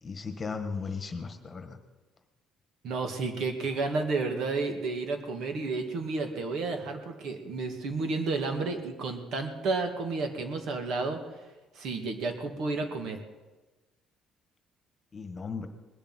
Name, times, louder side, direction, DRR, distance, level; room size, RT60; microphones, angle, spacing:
voice 1, 0.0-1.8 15.1-15.7, left 5 dB, 25° left, 8 dB, 1.5 m, -36 dB
voice 2, 2.8-11.2 11.8-13.2, right 3 dB, 60° right, 6 dB, 2.1 m, -31 dB
20.5 x 6.9 x 9.6 m, 1.2 s
cardioid pair, 135°, 0 cm